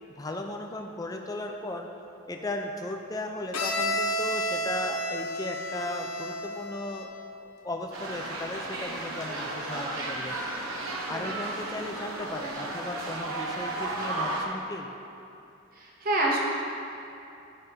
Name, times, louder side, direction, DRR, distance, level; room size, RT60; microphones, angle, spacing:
voice 1, 0.2-1.9 2.3-7.1 7.4-10.4 11.1-14.9, left 1 dB, 15° left, 3 dB, 0.4 m, -36 dB
Bowed string instrument, 3.5-7.3, equal, 90° left, 0.8 m, -31 dB
sound 1, 7.9-14.5, right 2 dB, 85° right, 0.9 m, -34 dB
voice 2, 15.7-16.4, right 2 dB, 45° right, -3 dB, 1.0 m, -27 dB
12.0 x 5.3 x 2.7 m, 2.8 s
head